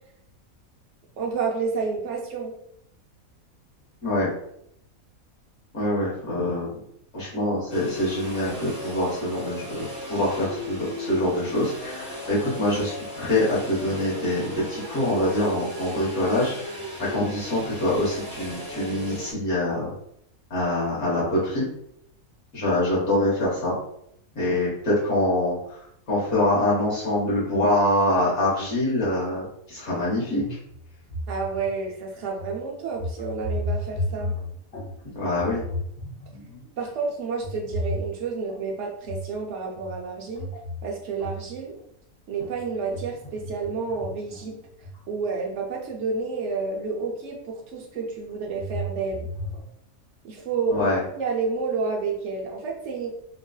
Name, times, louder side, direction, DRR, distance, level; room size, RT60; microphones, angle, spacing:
voice 1, 1.2-2.5 31.3-34.3 36.8-40.5 40.8-41.8 42.3-44.6 45.1-49.3 50.2-50.9 51.1-53.1, right 4 dB, 60° right, 0 dB, 0.9 m, -30 dB
voice 2, 5.7-6.8 7.1-16.7 17.1-19.9 20.5-21.7 22.5-23.7 24.4-25.8 26.1-30.4 35.0-35.6 50.7-51.0, left 1 dB, 80° left, -7 dB, 1.7 m, -25 dB
sound 1, 7.7-19.3, left 1 dB, 15° right, 1.0 m, -36 dB
sound 2, 30.0-30.1 30.4-31.9 32.4-32.6 32.9-35.0 35.3-36.8 37.4-38.6 39.0-39.4 39.7-41.8 42.4-45.0 45.9-46.0 46.5-46.6 47.9-49.6, left 1 dB, 65° left, 1.6 m, -33 dB
3.7 x 2.5 x 2.3 m, 0.71 s
omnidirectional pair, 1.5 m